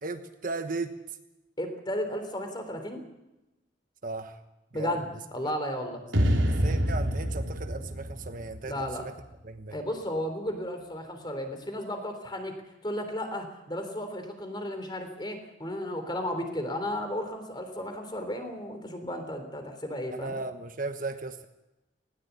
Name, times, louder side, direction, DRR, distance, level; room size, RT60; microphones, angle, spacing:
voice 1, 0.0-0.9 4.0-4.4 4.7-5.0 5.4-5.5 6.4-9.1 9.4-9.8 20.1-21.5, right 3 dB, 45° right, 8 dB, 1.3 m, -36 dB
voice 2, 1.6-3.0 4.7-6.0 8.7-9.0 9.7-12.6 12.8-20.4, left 1 dB, 25° left, 7 dB, 3.5 m, -34 dB
sound 1, 6.1-9.3, equal, 85° right, 3.2 m, -27 dB
19.5 x 18.0 x 8.3 m, 0.97 s
head